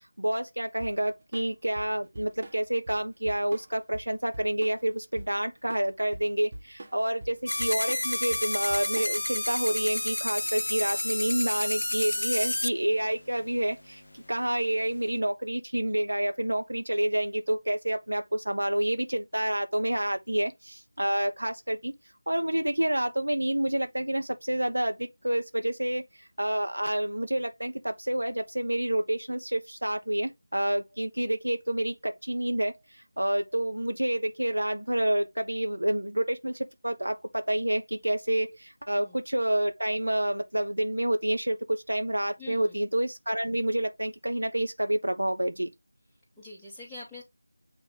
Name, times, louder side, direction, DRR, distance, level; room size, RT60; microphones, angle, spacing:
voice 1, 0.2-21.9 22.3-26.0 26.4-32.7 33.2-45.7, right 1 dB, 80° right, 1.4 m, -28 dB
Drum kit / Drum, 0.8-9.4, right 1 dB, 30° right, 1.7 m, -44 dB
sound 1, 7.5-12.7, left 1 dB, 65° left, 0.4 m, -30 dB
voice 2, 42.4-42.8 46.4-47.2, left 2 dB, ahead, 2.2 m, -44 dB
8.3 x 3.0 x 3.8 m
figure-of-eight pair, 170°, 0 cm